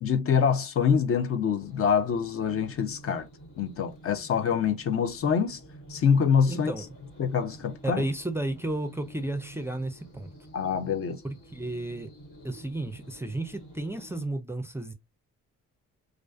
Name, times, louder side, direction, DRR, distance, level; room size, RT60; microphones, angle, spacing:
voice 1, 0.0-3.3 3.6-5.6 5.9-6.7 7.2-8.0 10.5-11.2, left 6 dB, 50° left, 0.5 m, -25 dB
sound 1, 1.6-14.3, right 1 dB, 75° left, 1.7 m, -49 dB
voice 2, 6.5-6.9 7.8-10.3 11.2-12.1 12.4-14.9, right 2 dB, 10° right, 0.4 m, -33 dB
2.4 x 2.4 x 2.2 m
cardioid pair, 90°, 30 cm